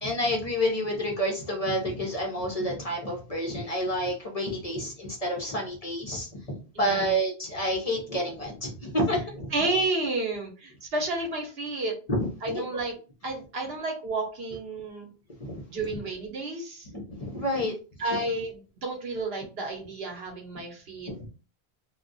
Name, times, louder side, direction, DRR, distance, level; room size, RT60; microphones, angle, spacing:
voice 1, 0.0-9.5 12.1-12.7 15.4-16.0 16.9-17.7 21.1-21.3, equal, 40° left, 0 dB, 0.7 m, -29 dB
voice 2, 6.7-7.1 9.1-9.2 9.5-11.9 12.4-13.0 13.2-15.1 15.7-16.9 18.0-21.1, right 2 dB, 70° right, 2 dB, 1.1 m, -31 dB
2.3 x 2.3 x 3.8 m, 0.35 s
omnidirectional pair, 1.1 m